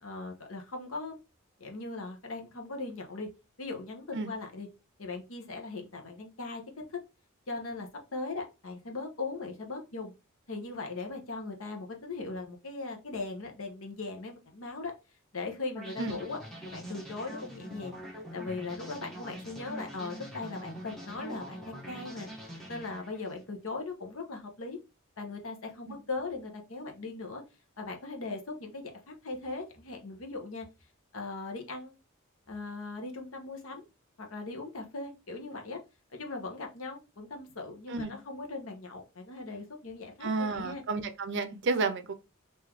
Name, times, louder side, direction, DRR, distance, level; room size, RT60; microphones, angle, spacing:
voice 1, 0.0-1.2 1.6-3.3 3.6-4.7 5.0-6.6 6.9-7.0 7.5-10.1 10.5-14.9 15.3-16.4 16.6-18.0 18.3-22.3 22.7-24.8 25.2-27.4 27.8-30.7 31.1-31.9 32.5-33.8 34.2-35.8 36.1-40.8, left 3 dB, 65° left, 0.9 m, -39 dB
sound 1, 15.7-23.4, equal, ahead, 1.1 m, -44 dB
voice 2, 40.2-42.1, right 3 dB, 55° right, 0.5 m, -31 dB
3.8 x 2.7 x 3.0 m
head